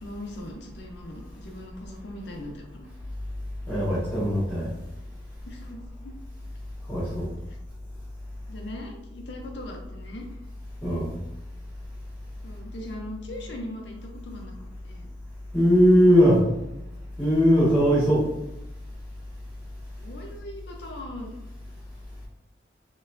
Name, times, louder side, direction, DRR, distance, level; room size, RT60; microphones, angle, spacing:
voice 1, 0.0-2.9 5.4-6.1 7.5-7.6 8.5-10.3 12.4-14.6 14.8-15.1 20.0-21.4, left 1 dB, 70° left, 1 dB, 0.6 m, -40 dB
voice 2, 3.7-4.7 6.9-7.2 10.8-11.1 15.5-16.4 17.2-18.2, equal, 10° left, -13 dB, 1.4 m, -19 dB
4.2 x 3.0 x 2.6 m, 0.89 s
head